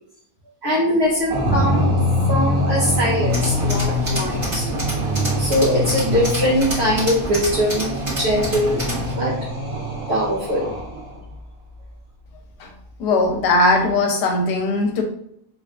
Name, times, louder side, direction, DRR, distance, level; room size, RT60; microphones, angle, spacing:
voice 1, 0.6-1.9 2.3-4.7 5.4-7.9 8.2-8.8 9.2-9.5 10.1-10.7, equal, 55° right, -5 dB, 0.7 m, -21 dB
sound 1, 1.3-11.2, left 1 dB, 85° right, 1.7 m, -24 dB
Tools, 3.3-9.1, right 1 dB, 20° right, 1.3 m, -28 dB
voice 2, 13.0-15.0, left 2 dB, 85° left, 3 dB, 1.3 m, -19 dB
3.5 x 2.5 x 2.3 m, 0.69 s
omnidirectional pair, 1.7 m